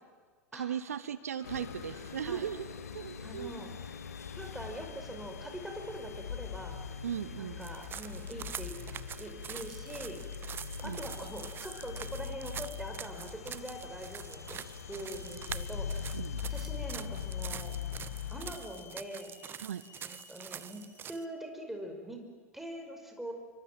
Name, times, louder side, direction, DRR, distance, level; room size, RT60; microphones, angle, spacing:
voice 1, 0.5-2.7 2.9-3.5 7.0-7.7 10.8-11.0 16.1-16.4 19.6-19.8, right 9 dB, 70° right, 16 dB, 0.9 m, -37 dB
sound 1, 1.4-18.5, left 7 dB, 75° left, 1.6 m, -42 dB
sound 2, 1.4-21.3, left 8 dB, 35° left, 3.7 m, -57 dB
voice 2, 3.2-3.7 4.4-6.8 7.4-8.8 9.2-10.2 10.8-16.2 16.5-17.8 18.3-19.4 20.0-22.2 22.5-23.3, right 1 dB, 5° right, 4 dB, 5.5 m, -43 dB
sound 3, 7.6-21.2, right 9 dB, 25° right, 0.8 m, -45 dB
29.5 x 24.0 x 7.7 m, 1.5 s
figure-of-eight pair, 85°, 8 cm